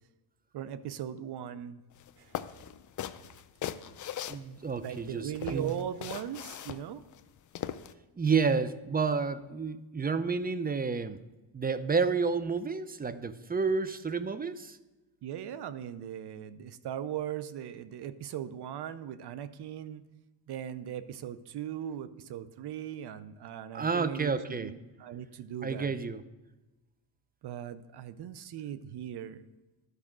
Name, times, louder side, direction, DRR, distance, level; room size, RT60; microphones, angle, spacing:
voice 1, 0.5-1.8 2.2-2.4 4.8-7.0 15.2-20.1 20.5-25.9 27.4-29.4, right 10 dB, 55° right, 14 dB, 0.7 m, -39 dB
sound 1, 2.0-2.1 2.3-5.0 5.3-7.9, left 10 dB, 40° left, 0.5 m, -39 dB
voice 2, 4.3-5.7 8.2-11.2 11.5-14.8 23.7-24.7 25.6-26.2, right 5 dB, 20° right, 13 dB, 0.5 m, -30 dB
11.0 x 5.0 x 6.1 m, 1.1 s
supercardioid pair, 75°, 47 cm